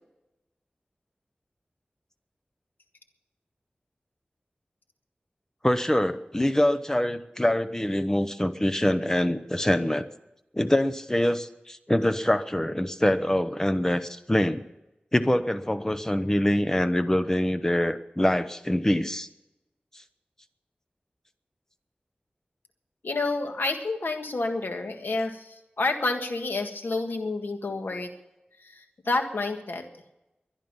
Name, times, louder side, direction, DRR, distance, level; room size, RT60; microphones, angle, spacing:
voice 1, 5.6-10.1 10.5-14.6 15.1-19.3, left 1 dB, 15° left, 11 dB, 0.9 m, -24 dB
voice 2, 23.0-28.1 28.7-29.8, left 3 dB, 80° left, 5 dB, 1.7 m, -29 dB
21.5 x 11.0 x 5.6 m, 0.95 s
wide cardioid pair, 70°, 3 cm